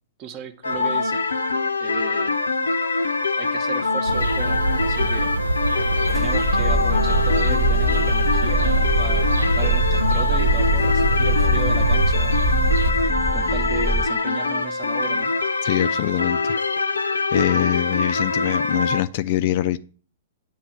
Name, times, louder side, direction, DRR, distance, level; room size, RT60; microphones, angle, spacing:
voice 1, 0.2-1.2 1.8-2.4 3.4-5.3 6.1-12.4 13.3-15.3, right 6 dB, 35° right, 0.8 m, -35 dB
sound 1, 0.6-19.0, left 3 dB, 75° left, 0.6 m, -24 dB
sound 2, 4.1-12.9, right 2 dB, 75° right, 0.4 m, -23 dB
sound 3, 6.0-14.0, equal, 5° left, 1.0 m, -25 dB
voice 2, 15.6-16.6 17.3-19.8, left 14 dB, 45° left, 0.3 m, -23 dB
8.6 x 3.0 x 6.3 m
figure-of-eight pair, 110°, 0 cm